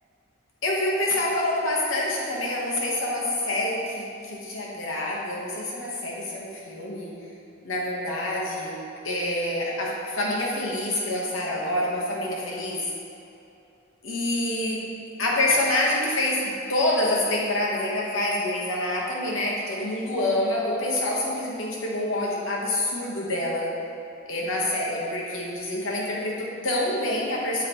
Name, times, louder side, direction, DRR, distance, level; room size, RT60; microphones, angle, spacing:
voice 1, 0.6-7.1 7.6-8.8 9.0-12.9 14.0-14.8 15.2-23.7 24.3-27.7, left 1 dB, 70° left, -3 dB, 1.1 m, -27 dB
7.3 x 4.7 x 2.9 m, 2.8 s
head